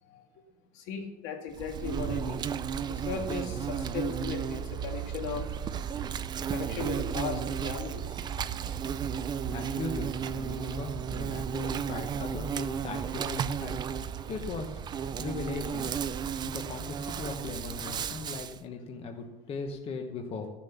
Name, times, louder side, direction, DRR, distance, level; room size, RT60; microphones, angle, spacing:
voice 1, 0.7-2.4 2.9-5.5 6.5-8.2, left 6 dB, 65° left, 3 dB, 2.2 m, -37 dB
Insect, 1.5-18.6, right 7 dB, 20° right, 0.4 m, -34 dB
voice 2, 9.5-13.8 14.3-14.8 15.2-15.9 16.5-20.5, left 4 dB, 30° left, 3 dB, 1.0 m, -38 dB
14.5 x 7.2 x 7.0 m, 1.1 s
cardioid pair, 160°, 21 cm